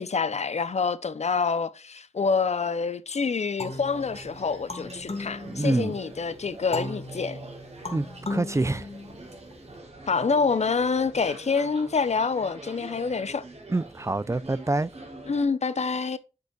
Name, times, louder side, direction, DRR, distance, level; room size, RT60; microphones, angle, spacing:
voice 1, 0.0-7.4 10.1-13.4 15.3-16.2, left 5 dB, 85° left, 0.6 m, -27 dB
sound 1, 3.6-6.1 6.7-9.5, left 2 dB, 70° left, 1.5 m, -37 dB
sound 2, 3.7-15.5, right 2 dB, 80° right, 3.0 m, -44 dB
voice 2, 5.5-6.0 7.9-8.9 13.7-14.9, right 2 dB, 25° right, 0.4 m, -26 dB
8.2 x 7.9 x 2.4 m
wide cardioid pair, 70°, 11 cm